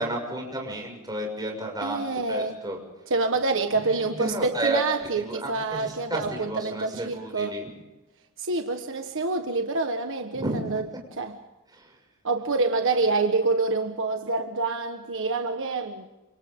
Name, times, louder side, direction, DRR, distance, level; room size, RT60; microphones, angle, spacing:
voice 1, 0.0-2.8 3.8-4.8 5.2-7.6 10.3-11.0 11.7-11.9, right 2 dB, 20° right, 1 dB, 6.6 m, -31 dB
voice 2, 1.8-2.5 3.1-7.6 8.4-10.9 11.2-11.4 12.2-16.0, right 3 dB, 60° right, 6 dB, 1.5 m, -27 dB
29.0 x 27.0 x 3.8 m, 1.0 s
head